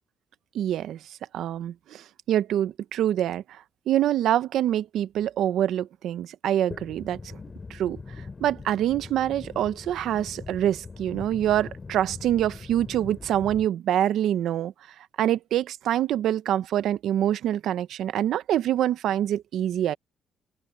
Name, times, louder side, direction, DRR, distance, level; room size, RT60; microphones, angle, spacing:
voice 1, 0.5-1.0 1.3-7.4 7.7-8.0 8.4-14.7 15.2-19.9, right 11 dB, 80° right, 0.9 m, -25 dB
sound 1, 6.7-13.7, left 4 dB, 30° left, 3.4 m, -42 dB
open air
cardioid pair, 90°, 0 cm